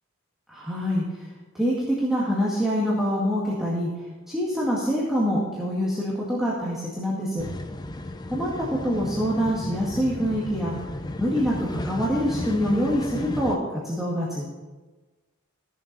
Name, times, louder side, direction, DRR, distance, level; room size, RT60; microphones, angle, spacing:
voice 1, 0.5-1.3 1.5-3.9 4.3-7.4 8.3-10.7 11.2-14.4, equal, ahead, -7 dB, 2.0 m, -25 dB
sound 1, 7.4-13.6, left 1 dB, 20° left, 0.6 m, -34 dB
14.5 x 7.2 x 5.4 m, 1.2 s
head